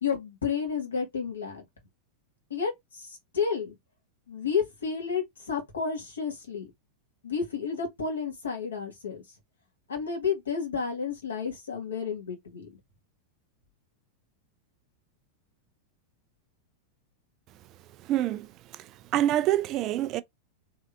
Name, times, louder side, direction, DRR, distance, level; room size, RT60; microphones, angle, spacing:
voice 1, 0.0-1.6 2.5-3.7 4.3-6.7 7.2-9.2 9.9-12.7, left 6 dB, 70° left, 1.6 m, -31 dB
voice 2, 18.0-20.2, right 13 dB, 35° right, 0.3 m, -27 dB
3.5 x 3.4 x 2.5 m
figure-of-eight pair, 90°, 0 cm